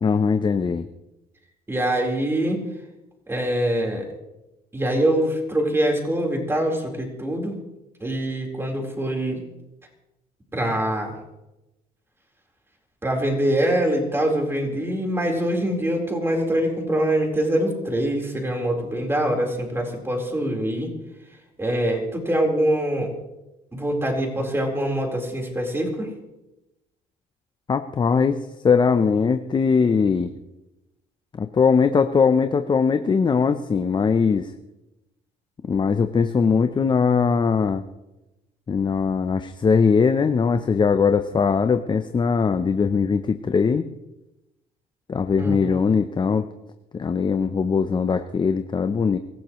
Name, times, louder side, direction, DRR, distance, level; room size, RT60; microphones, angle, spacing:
voice 1, 0.0-0.9 27.7-28.4 28.6-30.3 31.3-34.5 35.6-37.8 38.7-43.8 45.1-46.4 46.9-49.2, left 5 dB, 25° left, 8 dB, 0.7 m, -20 dB
voice 2, 1.7-2.6 3.3-4.0 4.7-7.6 8.0-9.4 10.5-11.1 13.0-20.9 21.6-23.1 23.7-26.1 45.4-45.8, right 1 dB, 15° right, 1 dB, 4.2 m, -24 dB
24.5 x 15.0 x 3.2 m, 0.96 s
cardioid pair, 110°, 17 cm